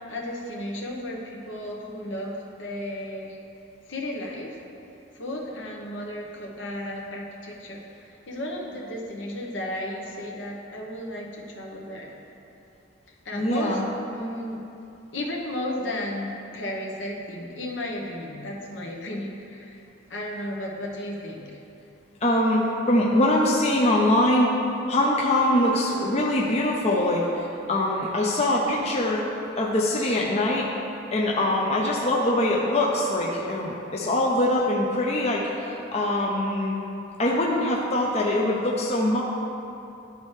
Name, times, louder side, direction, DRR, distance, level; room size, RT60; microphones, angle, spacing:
voice 1, 0.1-3.4 3.9-4.6 5.1-12.2 13.1-13.8 14.1-14.6 15.1-19.8 20.1-21.6, left 1 dB, 70° left, -1 dB, 0.9 m, -34 dB
voice 2, 13.3-13.8 22.2-24.5 24.9-29.2 29.6-30.7 31.1-36.8 37.2-39.2, left 1 dB, 35° left, -3 dB, 0.6 m, -23 dB
11.0 x 4.2 x 3.2 m, 2.7 s
head